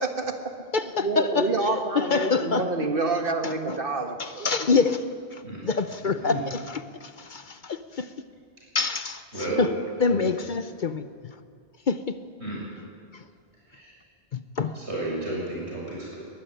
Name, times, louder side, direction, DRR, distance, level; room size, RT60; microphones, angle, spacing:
voice 1, 0.0-0.6 1.0-4.5, right 3 dB, 55° right, 5 dB, 1.8 m, -28 dB
voice 2, 0.7-2.7 3.4-3.8 4.2-5.0 5.3-8.1 8.7-9.7 10.0-11.4 11.9-12.2 13.1-13.2 14.3-14.8, left 4 dB, 50° left, 11 dB, 0.8 m, -27 dB
voice 3, 14.8-16.2, right 2 dB, 80° right, -6 dB, 7.5 m, -32 dB
21.5 x 13.5 x 9.9 m, 2.2 s
omnidirectional pair, 1.1 m